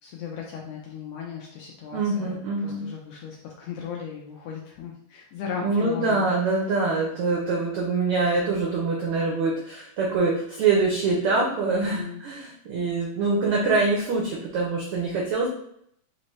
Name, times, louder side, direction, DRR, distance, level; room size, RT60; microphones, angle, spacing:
voice 1, 0.0-6.3 11.7-12.2, left 7 dB, 80° left, -1 dB, 1.5 m, -37 dB
voice 2, 1.9-2.9 5.6-15.5, right 3 dB, 80° right, -2 dB, 1.2 m, -24 dB
5.0 x 2.9 x 3.1 m, 0.71 s
omnidirectional pair, 3.4 m